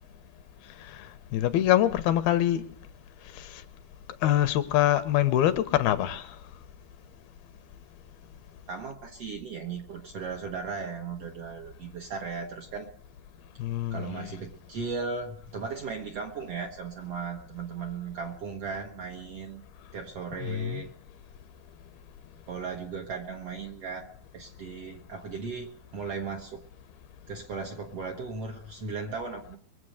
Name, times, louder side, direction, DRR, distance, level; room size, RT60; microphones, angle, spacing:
voice 1, 1.3-2.7 3.4-3.6 4.2-6.4 13.6-14.3 20.4-20.8, left 12 dB, 85° left, 2.8 m, -25 dB
voice 2, 8.7-12.9 13.9-19.6 19.9-20.9 22.5-26.6 27.3-29.6, right 5 dB, 60° right, 1.7 m, -37 dB
23.5 x 7.9 x 6.4 m
omnidirectional pair, 4.3 m